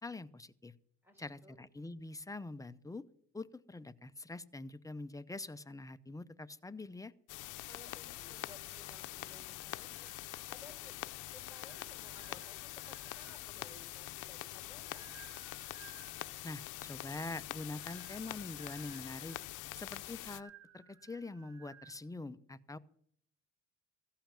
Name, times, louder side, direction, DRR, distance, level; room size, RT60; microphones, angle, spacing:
voice 1, 0.0-0.7 1.2-3.0 3.3-7.1 16.4-19.4 19.8-22.8, left 2 dB, 10° left, 12 dB, 0.6 m, -45 dB
voice 2, 1.0-1.6 7.6-10.9 11.2-15.2, left 1 dB, 5° right, 5 dB, 4.6 m, -59 dB
sound 1, 7.3-20.4, left 17 dB, 85° left, 0.6 m, -45 dB
sound 2, 9.0-10.8 11.2-13.7 14.4-16.5 17.5-22.0, right 9 dB, 65° right, 1.3 m, -61 dB
15.0 x 5.7 x 8.7 m, 0.67 s
cardioid pair, 90°, 30 cm